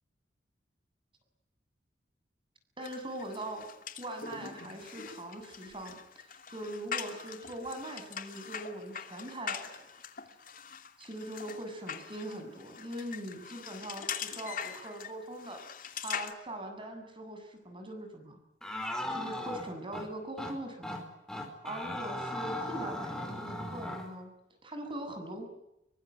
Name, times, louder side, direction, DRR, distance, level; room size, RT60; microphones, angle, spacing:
sound 1, 2.8-16.3, left 7 dB, 50° left, 2.7 m, -42 dB
voice 1, 2.8-3.7 4.0-9.9 11.0-15.6 15.9-18.4 19.1-21.1 21.6-24.3 24.6-25.4, right 1 dB, 30° right, 5 dB, 7.8 m, -41 dB
sound 2, 18.6-20.1 20.4-20.5 20.8-21.0 21.3-24.1, left 1 dB, 5° left, 4.7 m, -37 dB
26.0 x 24.0 x 9.7 m, 0.84 s
head